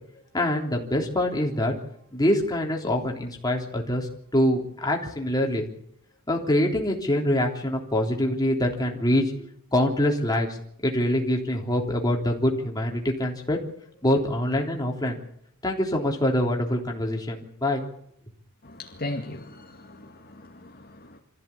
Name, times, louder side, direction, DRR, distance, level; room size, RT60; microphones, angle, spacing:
voice 1, 0.3-1.7 2.1-5.7 6.3-10.6 10.8-13.6 14.0-15.2 15.6-17.8, left 1 dB, 20° left, 3.5 m, -25 dB
voice 2, 18.6-21.2, left 2 dB, 45° left, 2.3 m, -38 dB
25.5 x 15.0 x 8.6 m
head